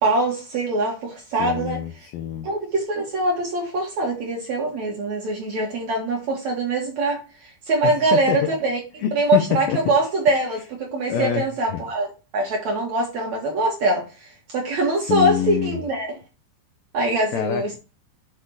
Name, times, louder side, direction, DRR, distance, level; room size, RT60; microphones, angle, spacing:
voice 1, 0.0-1.8 2.4-12.1 12.3-16.2 16.9-17.8, right 2 dB, 55° right, 2.1 m, -23 dB
voice 2, 1.4-2.5 7.8-8.5 9.0-9.8 11.1-11.5 11.7-11.8 15.0-15.8 17.3-17.8, left 10 dB, 80° left, 2.1 m, -26 dB
6.6 x 5.5 x 4.7 m
omnidirectional pair, 5.1 m